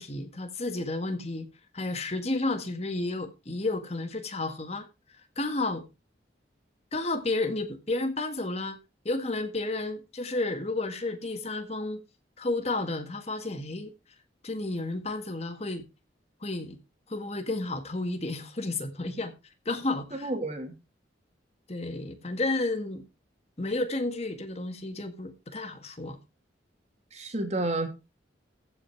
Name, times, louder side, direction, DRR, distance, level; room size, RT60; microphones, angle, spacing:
voice 1, 0.0-1.5 1.7-4.9 5.4-5.8 6.9-8.8 9.1-12.0 12.4-13.9 14.4-15.8 16.4-16.8 17.1-19.3 19.7-20.3 21.7-23.0 23.6-26.2, left 2 dB, 35° left, 1.7 m, -31 dB
voice 2, 20.2-20.7 27.1-27.9, right 2 dB, 35° right, 2.7 m, -30 dB
15.0 x 6.0 x 4.6 m
head